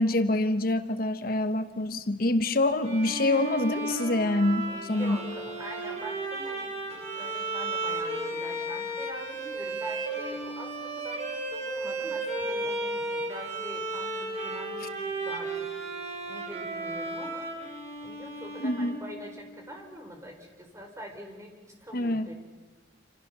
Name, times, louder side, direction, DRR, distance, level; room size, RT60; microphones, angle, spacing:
voice 1, 0.0-5.2 14.8-14.9 18.6-19.0 21.9-22.3, left 2 dB, 55° left, 10 dB, 1.1 m, -26 dB
Bowed string instrument, 2.8-19.4, right 2 dB, 35° right, 4.9 m, -34 dB
voice 2, 4.7-15.7 16.3-17.5 18.0-22.3, right 1 dB, 15° right, 3 dB, 4.3 m, -44 dB
28.0 x 27.5 x 6.8 m, 1.3 s
head